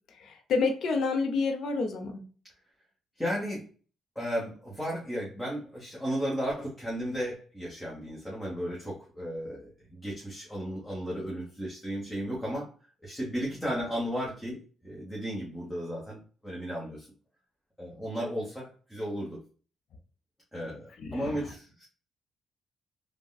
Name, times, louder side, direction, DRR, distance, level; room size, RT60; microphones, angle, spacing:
voice 1, 0.1-2.2 21.0-21.4, left 4 dB, 65° left, 3 dB, 0.7 m, -29 dB
voice 2, 3.2-3.7 4.1-12.7 13.0-17.1 17.8-19.4 20.5-21.9, equal, 5° left, -4 dB, 1.1 m, -34 dB
3.5 x 2.2 x 2.3 m, 0.39 s
cardioid pair, 90°, 0 cm